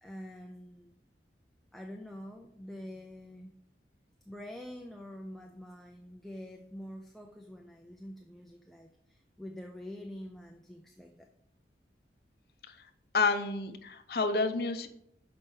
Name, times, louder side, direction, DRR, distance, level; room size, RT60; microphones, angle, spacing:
voice 1, 0.0-0.9 1.7-3.5 4.3-11.3, left 1 dB, ahead, 2 dB, 0.4 m, -46 dB
voice 2, 13.1-14.9, left 4 dB, 55° left, 7 dB, 0.7 m, -29 dB
6.3 x 5.2 x 5.4 m, 0.74 s
head